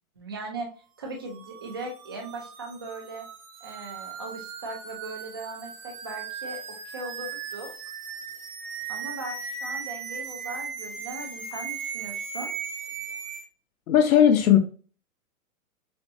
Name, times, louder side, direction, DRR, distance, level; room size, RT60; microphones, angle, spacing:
voice 1, 0.2-0.7 1.0-3.3 3.6-6.6 6.8-7.7 8.9-12.5, right 2 dB, 20° right, 0.3 m, -38 dB
sound 1, 1.2-13.4, right 6 dB, 80° right, 1.2 m, -37 dB
voice 2, 13.9-14.6, left 9 dB, 70° left, 0.8 m, -17 dB
6.7 x 2.2 x 2.7 m
hypercardioid pair, 155°, 43 cm